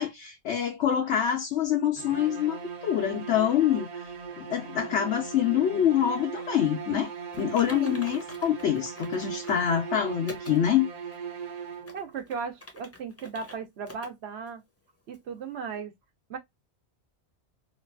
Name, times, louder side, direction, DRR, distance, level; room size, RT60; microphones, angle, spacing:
voice 1, 0.0-2.6 2.8-3.9 4.4-7.1 7.4-10.9, left 10 dB, 85° left, 1.0 m, -25 dB
sound 1, 2.0-12.2, right 6 dB, 45° right, 0.6 m, -39 dB
Typing, 7.3-9.7 10.3-10.6 11.1-11.2 11.7-13.6 13.9-14.1 14.5-14.6 15.1-15.2, left 1 dB, 15° left, 0.5 m, -46 dB
voice 2, 11.9-14.6 15.1-15.9 16.3-16.4, right 6 dB, 75° right, 1.0 m, -36 dB
2.9 x 2.3 x 2.3 m
omnidirectional pair, 1.1 m